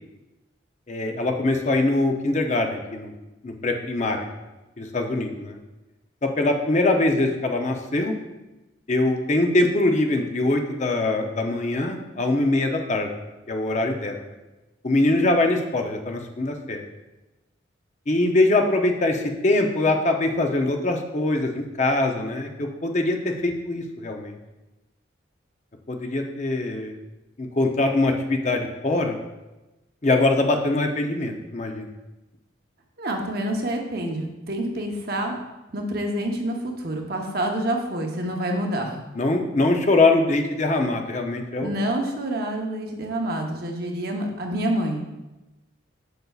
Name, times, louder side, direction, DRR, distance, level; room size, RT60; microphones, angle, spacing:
voice 1, 0.9-3.1 3.4-4.2 4.8-5.6 6.2-8.1 8.9-13.1 13.5-14.2 14.8-16.8 18.1-24.4 25.9-26.9 27.4-29.2 30.0-31.9 39.1-41.7, left 2 dB, 35° left, 3 dB, 0.6 m, -23 dB
voice 2, 33.0-35.3 35.7-39.0 41.6-45.1, right 1 dB, 50° right, 2 dB, 0.9 m, -27 dB
7.9 x 6.8 x 2.4 m, 1.0 s
head